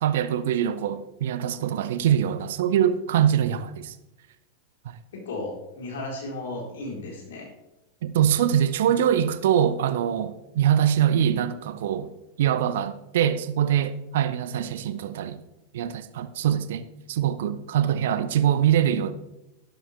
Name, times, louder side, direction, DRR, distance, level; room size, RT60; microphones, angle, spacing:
voice 1, 0.0-3.9 8.0-12.1 12.4-15.4 15.7-19.1, right 9 dB, 55° right, 0.7 m, -23 dB
voice 2, 5.1-7.5, left 2 dB, 60° left, 3.9 m, -35 dB
12.0 x 11.5 x 3.4 m
figure-of-eight pair, 90°, 0 cm